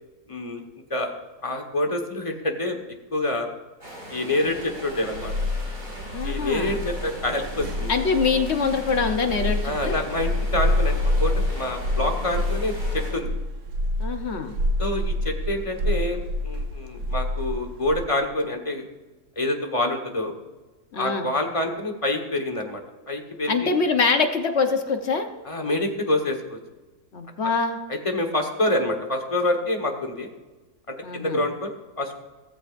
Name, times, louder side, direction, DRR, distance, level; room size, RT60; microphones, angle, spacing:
voice 1, 0.3-0.6 0.9-1.1 1.4-2.8 3.1-3.5 4.1-5.3 6.2-7.9 9.6-13.3 14.8-18.8 19.4-20.3 20.9-22.8 23.1-23.8 25.4-26.6 27.9-30.3 30.9-32.1, left 1 dB, 20° left, 3 dB, 1.3 m, -27 dB
sound 1, 3.8-13.1, right 1 dB, 35° right, 5.1 m, -40 dB
sound 2, 4.6-18.0, left 1 dB, 75° right, 1.6 m, -27 dB
voice 2, 6.1-6.8 7.9-10.0 14.0-14.5 20.9-21.3 23.5-25.3 27.1-27.8 31.0-31.4, left 4 dB, 45° left, 6 dB, 1.1 m, -24 dB
16.0 x 14.0 x 2.6 m, 1.2 s
omnidirectional pair, 1.7 m